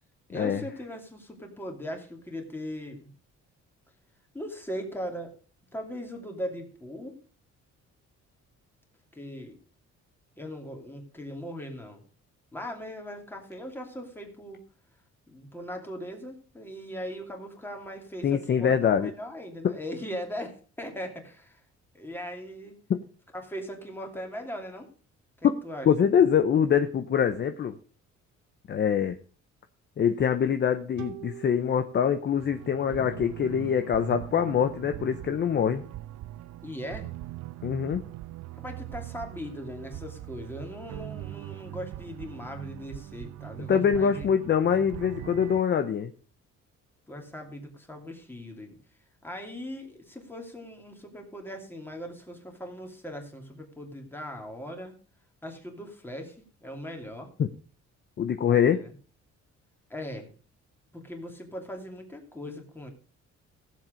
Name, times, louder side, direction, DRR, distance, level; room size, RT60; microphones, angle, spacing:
voice 1, 0.3-3.1 4.3-5.3 5.7-7.2 9.1-9.6 10.4-12.0 12.5-14.6 15.3-21.6 21.9-22.7 23.3-24.9 25.4-25.9 36.6-37.1 38.6-44.3 47.1-48.8 49.2-54.9 55.4-57.3 58.5-58.9 59.9-60.3 60.9-62.9, equal, 5° left, 2 dB, 2.6 m, -39 dB
voice 2, 18.2-19.1 19.6-19.7 22.9-23.0 25.4-25.6 25.9-27.8 28.7-29.2 30.0-35.8 37.6-38.0 43.7-46.1 57.4-57.5 58.2-58.8, left 8 dB, 35° left, 9 dB, 0.7 m, -24 dB
sound 1, 31.0-34.3, right 13 dB, 85° right, 2.8 m, -47 dB
sound 2, 32.4-45.6, right 15 dB, 65° right, 0.6 m, -41 dB
16.0 x 7.5 x 5.1 m, 0.38 s
cardioid pair, 150°, 29 cm